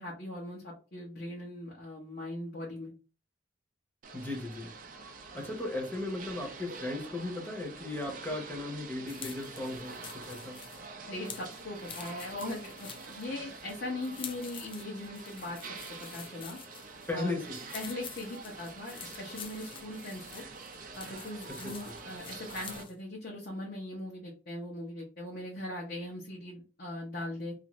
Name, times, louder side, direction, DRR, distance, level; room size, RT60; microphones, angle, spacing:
voice 1, 0.0-2.9 11.1-15.7 16.0-16.6 17.1-17.3 17.7-20.4 20.9-27.5, left 1 dB, 55° left, -4 dB, 0.8 m, -40 dB
sound 1, 4.0-22.8, right 4 dB, 50° right, 0.5 m, -46 dB
voice 2, 4.1-4.7 5.3-10.6 17.1-17.7 21.6-22.0, left 2 dB, 10° left, 0 dB, 0.8 m, -36 dB
sound 2, 9.1-23.0, left 7 dB, 30° left, 0.3 m, -48 dB
2.5 x 2.5 x 3.0 m, 0.34 s
head